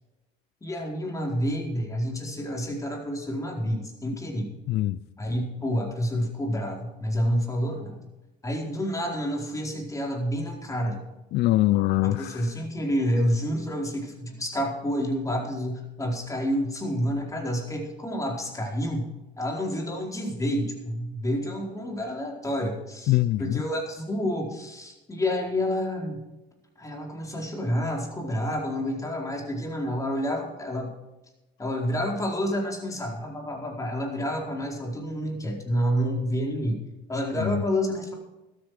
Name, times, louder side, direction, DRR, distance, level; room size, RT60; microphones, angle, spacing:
voice 1, 0.6-4.5 5.2-8.0 8.4-11.0 12.0-19.0 19.4-26.2 26.8-30.9 31.6-36.8 37.1-38.1, equal, 20° left, 4.4 m, -29 dB
voice 2, 4.7-5.0 11.3-12.4 23.1-23.6 37.4-37.6, left 16 dB, 80° left, 0.5 m, -23 dB
13.5 x 13.0 x 4.9 m
cardioid pair, 110°, 17 cm